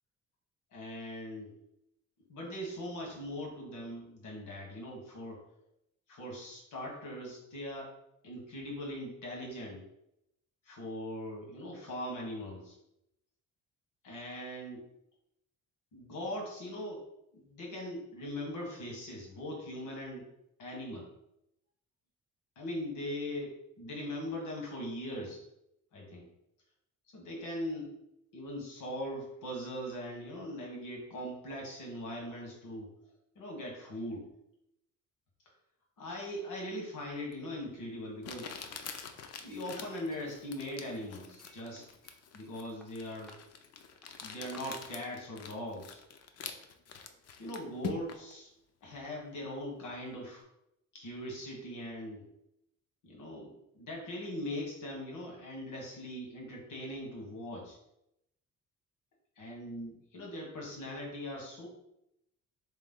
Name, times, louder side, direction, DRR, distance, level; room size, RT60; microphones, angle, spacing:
voice 1, 0.7-1.6 2.3-5.4 6.1-7.9 8.2-9.8 10.6-12.8 14.0-14.8 15.9-17.0 17.3-20.3 20.6-21.1 22.5-25.5 25.9-26.3 27.1-28.0 28.3-32.9 33.3-34.3 36.0-38.6 39.4-41.9 42.3-43.4 44.2-46.0 47.4-48.5 48.8-50.4 50.9-52.3 53.0-57.8 59.4-61.7, left 1 dB, 80° left, -1 dB, 1.5 m, -40 dB
Crumpling crinkling, 37.3-37.4 38.2-48.3, left 6 dB, 55° left, 0.5 m, -45 dB
Chink clink, 38.5-39.8 40.1-40.9 41.4-42.5 42.8-43.4 44.0-44.1 44.5-44.6, equal, ahead, 0.5 m, -60 dB
3.3 x 3.1 x 3.7 m, 0.83 s
cardioid pair, 90°, 30 cm